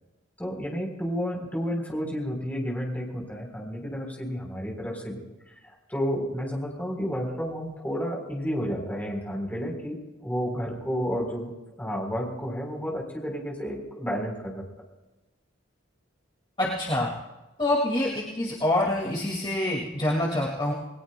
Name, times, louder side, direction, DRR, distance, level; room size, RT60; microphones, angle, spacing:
voice 1, 0.4-5.5 5.9-11.5 11.8-14.6, equal, 10° left, -1 dB, 3.9 m, -31 dB
voice 2, 16.6-17.1 17.6-20.7, left 1 dB, 25° left, -3 dB, 2.2 m, -26 dB
28.5 x 20.0 x 2.3 m, 1.0 s
head